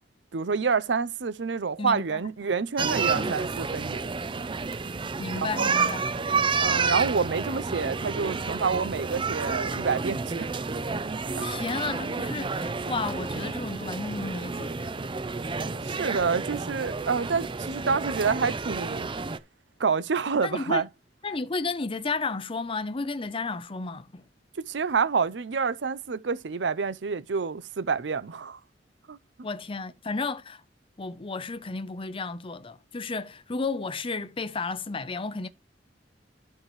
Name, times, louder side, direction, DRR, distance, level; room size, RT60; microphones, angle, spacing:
voice 1, 0.3-4.0 5.4-5.7 6.6-10.6 11.4-11.5 15.8-19.1 19.8-20.9 24.7-28.6 29.1-29.2, right 5 dB, 85° right, 0.6 m, -28 dB
voice 2, 1.8-2.2 3.1-3.4 5.2-6.0 11.4-14.9 20.4-20.8 21.2-24.2 29.4-30.6 31.0-35.5, left 3 dB, 30° left, 0.6 m, -33 dB
walking charlotte airport c concourse, 2.8-19.4, right 4 dB, 30° right, 0.5 m, -30 dB
13.5 x 4.7 x 3.1 m
head